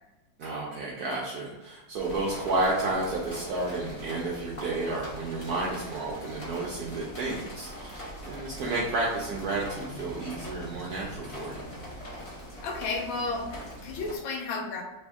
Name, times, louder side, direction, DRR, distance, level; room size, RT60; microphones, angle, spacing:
voice 1, 0.4-11.7, right 2 dB, 75° right, -3 dB, 0.8 m, -31 dB
sound 1, 2.0-14.2, equal, 50° left, 0.4 m, -42 dB
voice 2, 12.6-14.8, left 3 dB, 90° left, 2 dB, 1.5 m, -33 dB
3.4 x 2.6 x 3.4 m, 1.0 s
omnidirectional pair, 2.2 m